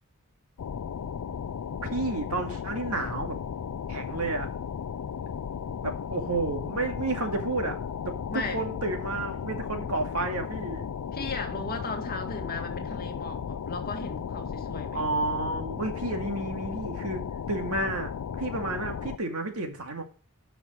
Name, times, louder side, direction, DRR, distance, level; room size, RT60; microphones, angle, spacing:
sound 1, 0.6-19.2, left 7 dB, 80° left, 0.4 m, -35 dB
voice 1, 1.8-3.4 3.9-4.5 5.8-7.8 8.1-10.9 14.9-20.0, right 2 dB, 75° right, 2.3 m, -31 dB
voice 2, 8.3-8.6 11.1-15.1, left 3 dB, 45° left, 1.9 m, -36 dB
11.0 x 5.9 x 6.2 m
head